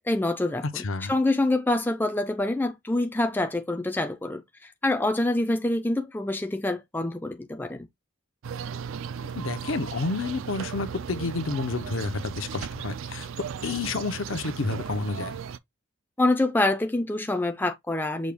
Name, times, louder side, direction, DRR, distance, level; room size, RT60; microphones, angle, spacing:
voice 1, 0.0-0.8 1.1-7.9 16.2-18.3, left 2 dB, 10° left, 0.4 m, -26 dB
voice 2, 0.7-1.1 9.2-13.3 13.6-15.4, left 3 dB, 65° left, 0.7 m, -30 dB
sound 1, 8.4-15.6, right 7 dB, 70° right, 0.4 m, -36 dB
6.2 x 2.3 x 3.4 m
head